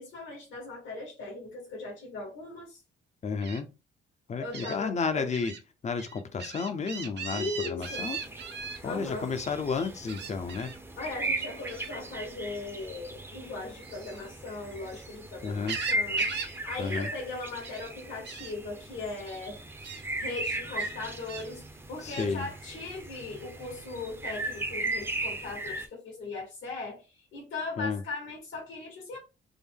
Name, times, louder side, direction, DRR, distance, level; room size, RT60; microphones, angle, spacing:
voice 1, 0.0-2.8 4.4-5.3 7.3-8.1 8.8-9.3 11.0-21.6 21.9-29.2, left 3 dB, 70° left, 1.5 m, -39 dB
voice 2, 3.2-3.7 4.3-5.5 5.8-8.2 8.8-10.7 15.4-15.8 16.8-17.1 22.0-22.5 27.8-28.0, left 5 dB, 35° left, 0.6 m, -32 dB
Gull seagull, 3.4-3.6 4.5-4.8 5.3-5.6 6.0-8.8 10.1-10.8 11.7-11.9 13.8-15.1 15.4-16.6 16.8-17.1 17.4-17.9 18.2-18.5 19.2-19.4 19.8-20.0 20.8-21.5 22.1-22.3, right 6 dB, 60° right, 0.9 m, -39 dB
sound 1, 7.8-25.9, right 2 dB, 10° right, 0.6 m, -37 dB
3.6 x 2.1 x 3.5 m
cardioid pair, 90°, 20 cm